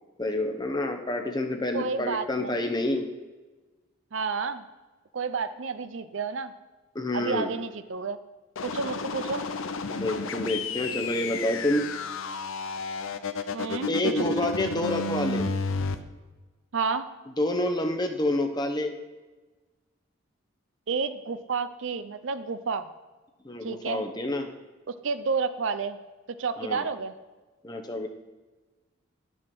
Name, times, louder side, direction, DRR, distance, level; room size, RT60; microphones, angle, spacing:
voice 1, 0.2-3.1 6.9-7.5 9.9-11.8 13.9-15.4 17.4-18.9 23.4-24.5 26.6-26.9 27.6-28.1, left 1 dB, 20° left, 4 dB, 0.8 m, -28 dB
voice 2, 1.7-2.7 4.1-4.6 5.1-6.5 7.1-8.2 8.6-9.4 13.5-14.5 16.7-17.1 20.9-22.9 23.6-24.0 24.9-26.0 26.4-27.1, right 5 dB, 65° right, 12 dB, 0.6 m, -30 dB
sound 1, 8.5-15.9, left 3 dB, 75° left, 0.6 m, -32 dB
11.0 x 6.3 x 6.0 m, 1.2 s
head